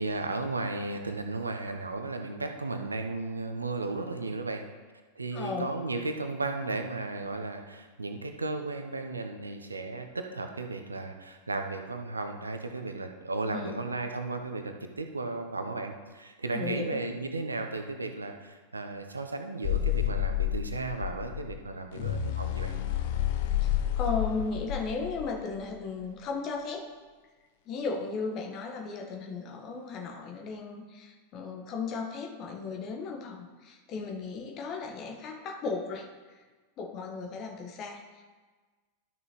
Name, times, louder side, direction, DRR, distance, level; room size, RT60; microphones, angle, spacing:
voice 1, 0.0-4.6 5.2-22.8, right 3 dB, 80° right, 6 dB, 0.7 m, -35 dB
voice 2, 5.3-5.7 13.5-13.8 16.5-17.0 24.0-26.9 27.7-36.1 36.8-38.3, left 4 dB, 35° left, 2 dB, 1.2 m, -35 dB
sound 1, 19.6-25.7, left 11 dB, 50° left, 0.7 m, -30 dB
12.5 x 6.2 x 3.0 m, 1.3 s
figure-of-eight pair, 90°, 0 cm